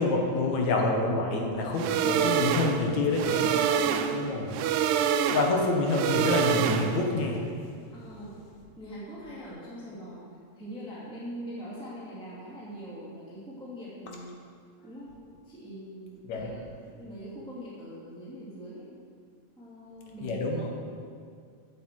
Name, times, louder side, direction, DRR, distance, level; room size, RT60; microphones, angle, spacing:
voice 1, 0.0-3.4 4.1-4.5 5.3-7.5 16.3-16.5 20.2-20.7, left 3 dB, 70° left, 1 dB, 2.5 m, -27 dB
sound 1, 1.8-7.2, right 8 dB, 85° right, 2.1 m, -27 dB
voice 2, 3.3-4.7 7.9-8.4 8.8-14.3 14.8-15.2 15.4-18.9 19.6-20.7, equal, ahead, -8 dB, 2.1 m, -42 dB
8.3 x 8.1 x 7.5 m, 2.2 s
omnidirectional pair, 3.4 m